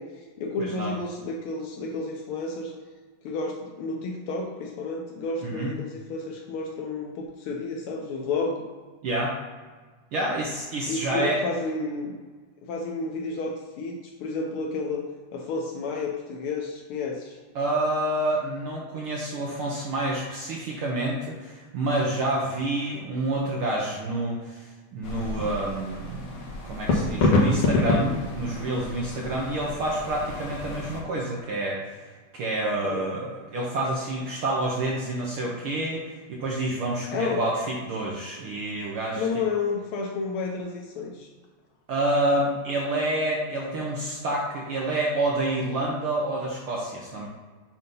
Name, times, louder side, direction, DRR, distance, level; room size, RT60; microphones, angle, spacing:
voice 1, 0.0-2.7 3.2-8.7 10.9-12.1 12.6-15.0 15.3-17.4 32.8-33.0 37.1-37.5 39.2-41.3, left 3 dB, 80° left, 0 dB, 1.2 m, -31 dB
voice 2, 0.6-0.9 5.4-5.7 9.0-9.4 10.1-11.4 17.5-31.9 32.3-39.2 41.9-47.3, right 1 dB, 65° right, -3 dB, 1.4 m, -28 dB
sound 1, 25.0-31.0, left 2 dB, 60° left, 2.1 m, -27 dB
7.9 x 2.8 x 5.3 m, 1.4 s
omnidirectional pair, 3.3 m